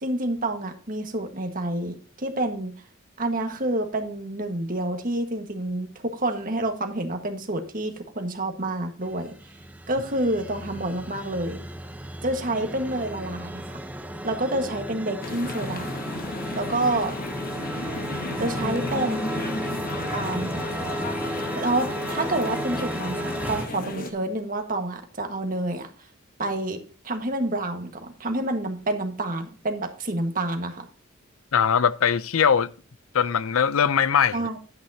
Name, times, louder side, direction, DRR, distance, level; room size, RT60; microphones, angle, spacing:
voice 1, 0.0-2.7 3.2-9.3 9.9-11.6 12.2-13.8 14.2-16.0 16.5-17.1 18.4-19.6 20.1-20.6 21.5-25.9 26.4-30.8 34.3-34.6, right 1 dB, 45° right, 1.6 m, -28 dB
sound 1, 9.0-23.7, right 1 dB, 10° right, 0.6 m, -34 dB
sound 2, 15.2-24.1, left 2 dB, 45° left, 1.1 m, -34 dB
voice 2, 31.5-32.7 33.1-34.5, left 7 dB, 85° left, 0.5 m, -21 dB
11.0 x 8.8 x 2.8 m
head